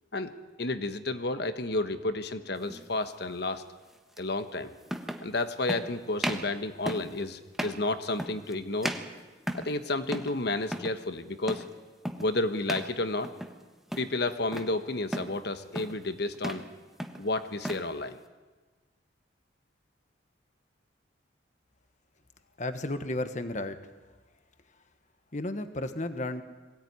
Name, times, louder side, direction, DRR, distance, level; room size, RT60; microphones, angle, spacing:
voice 1, 0.6-3.6 4.2-4.8 5.2-8.9 9.5-11.6 12.2-13.3 14.0-16.6 17.2-18.2, left 2 dB, 60° left, 10 dB, 1.3 m, -31 dB
sound 1, 2.7-2.9 4.2-4.3 4.9-5.3 5.7-5.9 6.2-6.5 6.9-7.1 7.5-7.8 8.2-8.5 8.8-9.8 10.1-10.4 10.6-11.0 11.5-11.7 12.1-12.3 12.7-12.9 13.2-13.6 13.9-14.7 15.1-15.4 15.7-16.0 16.3-16.7 17.0-17.9, equal, ahead, 1.3 m, -35 dB
voice 2, 22.6-23.8 25.3-26.4, left 1 dB, 40° left, 9 dB, 1.3 m, -33 dB
21.5 x 17.0 x 9.5 m, 1.3 s
head